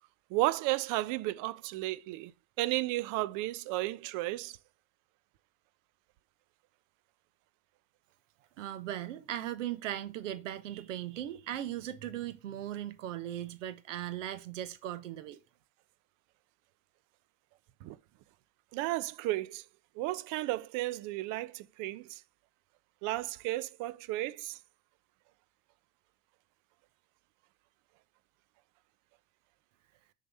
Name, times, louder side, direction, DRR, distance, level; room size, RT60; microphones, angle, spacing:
voice 1, 0.3-2.3 2.6-4.6 17.8-18.0 18.7-19.6 20.0-22.2 23.0-24.6, right 17 dB, 55° right, 0.7 m, -33 dB
voice 2, 8.6-15.4, right 12 dB, 80° right, 1.2 m, -38 dB
6.7 x 4.0 x 5.3 m
hypercardioid pair, 90°, 37 cm